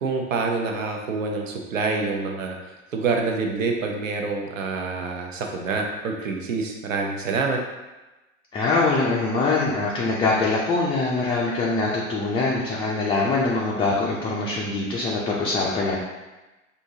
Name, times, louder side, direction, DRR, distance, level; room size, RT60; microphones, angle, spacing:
voice 1, 0.0-7.6, right 4 dB, 75° right, 2 dB, 0.7 m, -27 dB
voice 2, 8.5-16.0, left 3 dB, 15° left, -5 dB, 0.4 m, -23 dB
4.5 x 2.7 x 2.7 m, 1.1 s
figure-of-eight pair, 85°, 40 cm